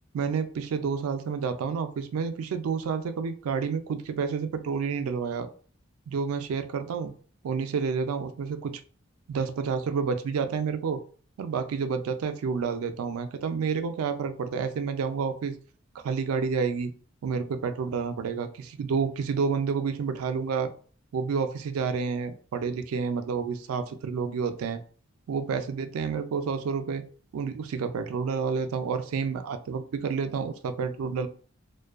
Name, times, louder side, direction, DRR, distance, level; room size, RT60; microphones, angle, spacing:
voice 1, 0.1-5.5 6.1-7.1 7.4-8.8 9.3-11.0 11.4-15.6 16.0-16.9 17.2-20.7 21.1-24.8 25.3-27.0 27.3-31.3, right 5 dB, 85° right, 9 dB, 0.3 m, -29 dB
2.5 x 2.2 x 2.3 m, 0.42 s
head